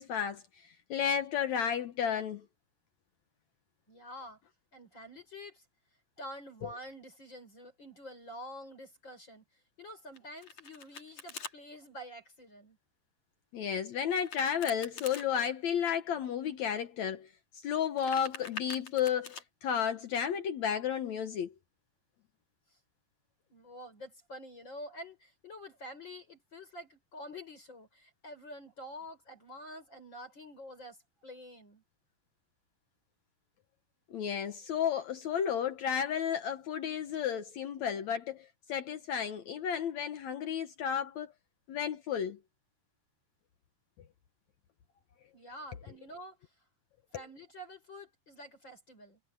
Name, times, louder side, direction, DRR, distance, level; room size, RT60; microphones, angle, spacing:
voice 1, 0.0-2.4 6.6-6.7 13.5-17.3 17.6-21.5 34.1-41.3 41.7-42.4, left 8 dB, 75° left, 1.6 m, -32 dB
voice 2, 3.9-4.4 4.7-5.6 6.2-9.4 9.8-12.8 23.5-31.8 45.3-46.4 47.1-49.2, equal, 25° left, 5.9 m, -48 dB
Domestic sounds home sounds, 10.1-11.5 14.1-15.3 17.8-19.4, left 5 dB, 45° left, 4.0 m, -45 dB
omnidirectional pair, 4.8 m